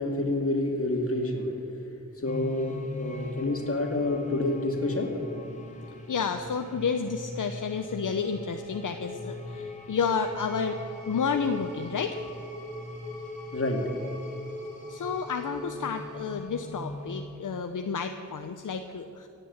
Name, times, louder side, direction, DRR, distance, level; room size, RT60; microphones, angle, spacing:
voice 1, 0.0-1.5 2.2-5.1 13.5-13.8, left 2 dB, 45° left, 2 dB, 2.5 m, -28 dB
sound 1, 2.3-17.2, left 2 dB, 25° left, 3.0 m, -40 dB
voice 2, 6.1-10.8 11.1-12.2 14.9-19.3, left 5 dB, 70° left, 6 dB, 0.8 m, -30 dB
16.0 x 9.2 x 8.6 m, 2.8 s
wide cardioid pair, 75°, 32 cm